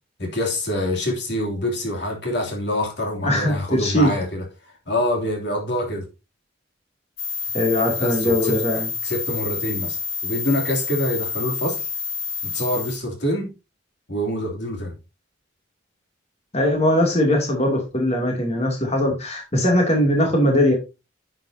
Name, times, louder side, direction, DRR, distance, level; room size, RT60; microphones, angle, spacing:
voice 1, 0.2-6.1 8.0-8.6 9.0-11.9 12.4-13.5 14.1-15.0, left 1 dB, 60° left, 2.9 m, -26 dB
voice 2, 3.2-4.1 7.5-8.9 16.5-20.7, left 1 dB, 35° left, 2.7 m, -20 dB
sound 1, 7.2-13.0, left 5 dB, 85° left, 2.0 m, -28 dB
9.9 x 8.0 x 2.7 m
head